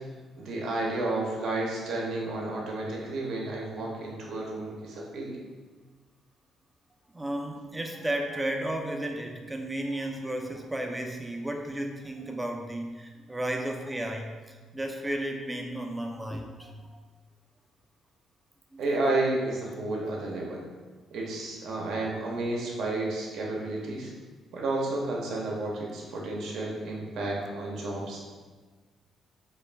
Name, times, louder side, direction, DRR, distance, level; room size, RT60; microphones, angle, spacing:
voice 1, 0.4-5.4 18.8-20.6 21.1-24.1 24.5-28.3, right 2 dB, 75° right, -2 dB, 0.6 m, -31 dB
voice 2, 7.1-16.8 18.7-18.8, right 1 dB, 10° right, 2 dB, 0.4 m, -33 dB
2.4 x 2.3 x 3.2 m, 1.4 s
cardioid pair, 90°, 0 cm